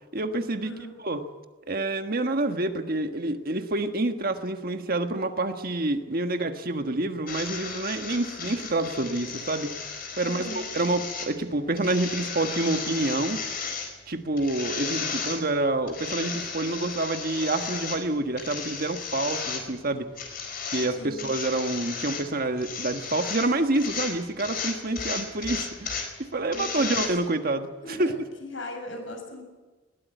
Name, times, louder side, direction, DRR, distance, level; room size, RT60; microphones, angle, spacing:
voice 1, 0.1-0.7 1.0-1.2 1.7-9.7 10.2-13.4 14.1-20.1 20.7-28.1, right 2 dB, 50° right, 6 dB, 1.5 m, -28 dB
sound 1, 7.3-27.1, left 5 dB, 50° left, 4.4 m, -35 dB
voice 2, 10.2-10.7 20.9-21.3 26.5-27.0 27.8-28.1 28.4-29.4, left 1 dB, 75° left, 4 dB, 6.8 m, -38 dB
21.0 x 18.0 x 9.2 m, 1.2 s
head